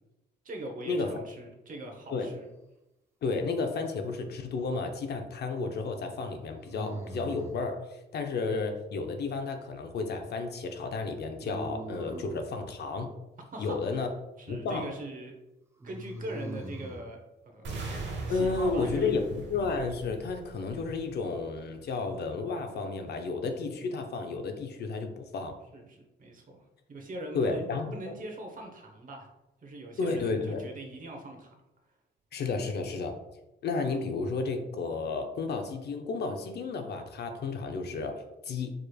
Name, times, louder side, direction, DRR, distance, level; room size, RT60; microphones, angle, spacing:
voice 1, 0.4-2.5 13.5-14.0 14.4-15.3 15.8-17.2 17.5-17.9 18.3-19.1 25.7-29.3 29.6-31.6, right 1 dB, 40° right, 3 dB, 0.9 m, -41 dB
voice 2, 3.2-13.1 13.6-14.1 14.5-14.9 18.3-25.6 27.3-27.9 30.0-30.6 32.3-33.2 33.6-38.7, left 4 dB, 55° left, 5 dB, 0.6 m, -32 dB
sound 1, 3.9-4.6 6.7-7.6 11.4-12.5 15.8-17.1, right 2 dB, 15° right, 0.4 m, -41 dB
sound 2, 17.6-21.7, right 3 dB, 70° right, 0.9 m, -40 dB
4.8 x 3.1 x 2.3 m, 0.95 s
cardioid pair, 90°, 20 cm